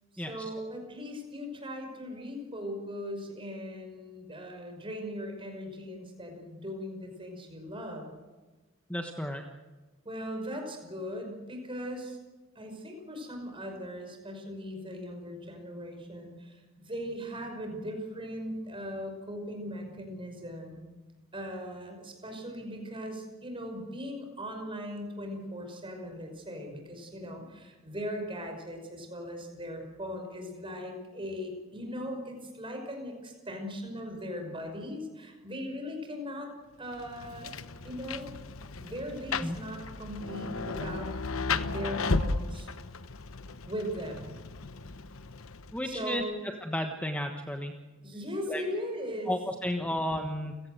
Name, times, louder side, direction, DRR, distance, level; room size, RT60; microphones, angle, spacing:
voice 1, 0.1-8.1 10.0-12.2 12.6-20.9 21.3-36.5 36.8-37.5 37.8-38.3 38.8-41.1 41.6-42.7 43.7-44.4 45.8-46.4 48.0-49.3, equal, 25° right, 4 dB, 5.8 m, -39 dB
voice 2, 8.9-9.4 39.4-39.6 45.7-46.2 46.6-47.7 48.5-48.6 49.3-50.6, left 1 dB, 5° left, 4 dB, 1.3 m, -33 dB
Rain, 36.9-46.0, left 3 dB, 80° left, 1.0 m, -35 dB
30.0 x 17.0 x 8.0 m, 1.3 s
head